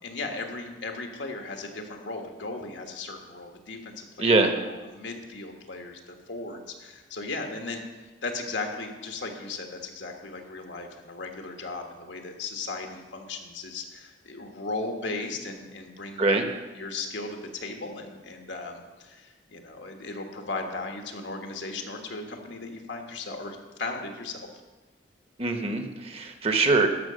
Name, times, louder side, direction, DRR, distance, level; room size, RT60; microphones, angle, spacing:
voice 1, 0.0-16.4 16.7-24.4, left 3 dB, 80° left, 3 dB, 1.5 m, -36 dB
voice 2, 4.2-4.5 16.2-16.4 25.4-26.9, right 3 dB, 35° right, 6 dB, 0.9 m, -23 dB
12.5 x 5.9 x 6.4 m, 1.2 s
head